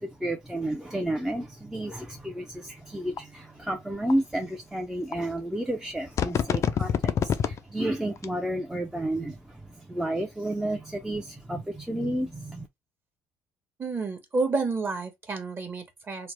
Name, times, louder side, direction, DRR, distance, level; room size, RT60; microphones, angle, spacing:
voice 1, 0.0-12.7, right 1 dB, 5° right, 0.5 m, -31 dB
sound 1, 3.2-3.3 4.1-4.2 5.1-5.2 6.2-7.6 8.2-8.3, left 8 dB, 45° left, 0.4 m, -25 dB
voice 2, 13.8-16.3, right 3 dB, 30° right, 1.1 m, -30 dB
3.1 x 2.0 x 3.1 m
supercardioid pair, 80°, 7 cm